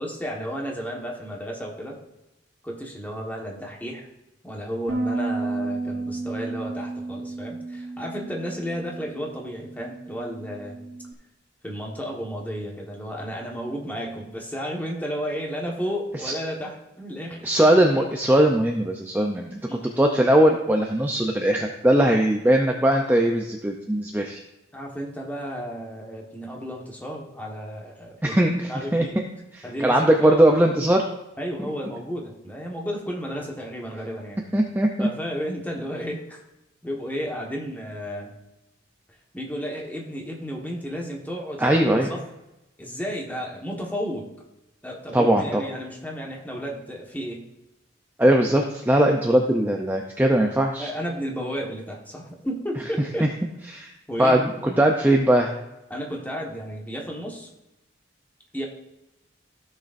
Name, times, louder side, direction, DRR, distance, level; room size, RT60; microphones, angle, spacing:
voice 1, 0.0-2.0 2.6-4.1 4.4-10.8 11.6-17.7 19.7-19.9 24.7-28.4 28.7-29.3 29.6-30.4 31.4-34.4 35.0-36.4 36.8-38.3 39.3-42.2 42.8-44.3 44.8-47.4 50.8-53.3 54.1-54.8 55.9-57.5 58.5-58.7, equal, 10° left, -1 dB, 1.3 m, -33 dB
Bass guitar, 4.9-11.1, right 3 dB, 60° right, 1.0 m, -32 dB
voice 2, 17.4-19.6 20.0-24.4 28.2-29.0 29.8-31.0 34.5-35.1 41.6-42.1 45.1-45.6 48.2-50.9 53.7-53.9 54.2-54.5 54.8-55.5, right 1 dB, 10° right, 2 dB, 0.5 m, -20 dB
15.0 x 6.5 x 2.6 m, 0.95 s
head